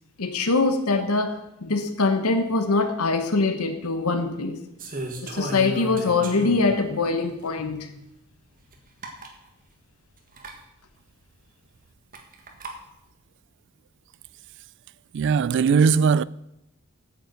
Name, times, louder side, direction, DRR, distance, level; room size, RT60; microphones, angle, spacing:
voice 1, 0.2-4.6 5.2-7.9, left 3 dB, 90° left, 1.0 m, -23 dB
sound 1, 4.8-6.8 7.4-7.5 8.7-8.8 9.0-9.3 10.3-10.6 12.1-12.8, right 1 dB, 40° right, 1.6 m, -34 dB
voice 2, 15.1-16.2, right 5 dB, 55° right, 0.3 m, -19 dB
9.2 x 6.9 x 8.1 m
head